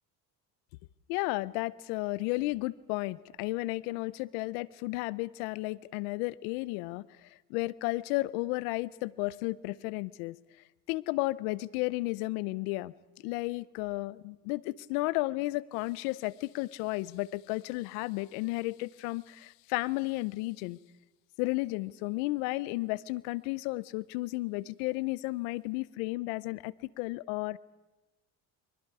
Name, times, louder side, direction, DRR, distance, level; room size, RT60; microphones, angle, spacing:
voice 1, 1.1-10.4 10.9-12.9 13.2-20.8 21.4-27.6, left 21 dB, 85° left, 21 dB, 0.7 m, -33 dB
30.0 x 24.0 x 4.8 m, 1.1 s
supercardioid pair, 75°, 44 cm